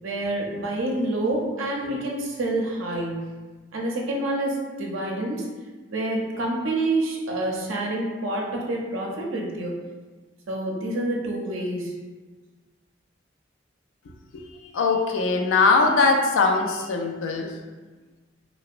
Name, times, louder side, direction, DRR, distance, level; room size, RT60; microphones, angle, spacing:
voice 1, 0.0-3.3 3.7-5.5 5.9-9.8 10.5-12.0, right 1 dB, 90° right, -1 dB, 0.5 m, -27 dB
voice 2, 14.3-17.5, left 4 dB, 80° left, 3 dB, 0.3 m, -21 dB
2.7 x 2.0 x 2.4 m, 1.3 s
head